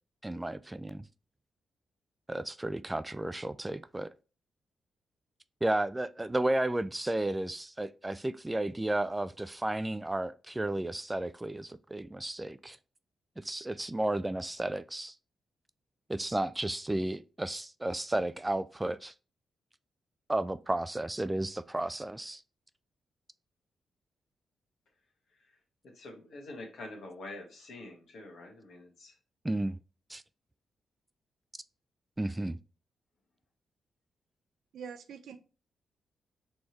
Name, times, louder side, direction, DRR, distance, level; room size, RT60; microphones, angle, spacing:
voice 1, 0.2-1.0 2.3-4.1 5.6-12.8 13.4-15.1 16.1-19.1 20.3-22.4 29.4-29.8 30.1-30.2 32.2-32.6, right 1 dB, 20° right, 0.3 m, -33 dB
voice 2, 25.9-29.1, left 2 dB, 65° left, 1.4 m, -46 dB
voice 3, 34.7-35.4, right 7 dB, 70° right, 0.5 m, -44 dB
4.3 x 3.4 x 3.0 m
hypercardioid pair, 40°, 0 cm